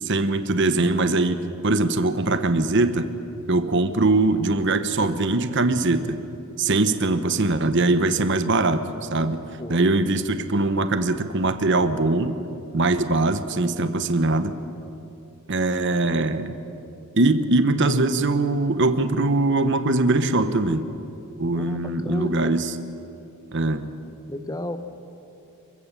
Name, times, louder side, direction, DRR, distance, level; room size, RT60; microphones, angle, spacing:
voice 1, 0.0-3.1 3.5-6.2 6.6-9.4 9.7-12.4 12.7-14.6 15.5-16.5 17.2-20.9 21.4-22.7 23.5-23.9, right 2 dB, 55° right, 10 dB, 1.0 m, -22 dB
voice 2, 6.7-7.3 9.6-9.8 21.5-22.5 24.3-24.8, left 1 dB, 15° left, 9 dB, 1.0 m, -34 dB
27.5 x 15.5 x 7.4 m, 2.9 s
head